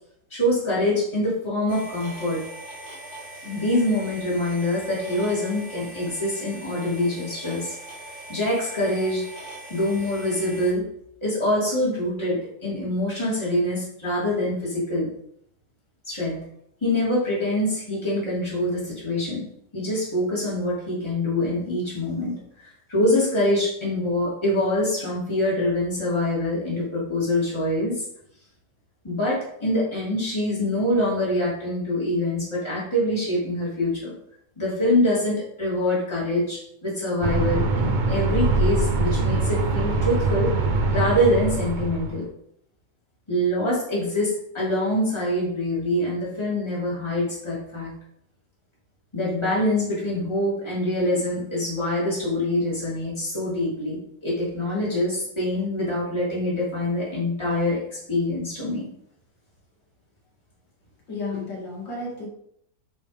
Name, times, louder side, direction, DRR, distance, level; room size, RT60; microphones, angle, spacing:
voice 1, 0.3-2.5 3.4-7.8 8.3-9.3 9.7-10.8 11.2-15.1 16.1-16.4 16.8-19.4 19.7-28.0 29.0-34.1 34.6-42.2 43.3-47.9 49.1-58.9, left 1 dB, 15° left, -7 dB, 3.2 m, -25 dB
sound 1, 1.7-10.7, right 1 dB, 40° left, 2.6 m, -41 dB
sound 2, 37.2-42.2, right 3 dB, 90° right, 0.4 m, -23 dB
voice 2, 61.1-62.3, left 3 dB, 80° left, -3 dB, 3.0 m, -32 dB
9.2 x 5.2 x 3.6 m, 0.71 s
omnidirectional pair, 2.0 m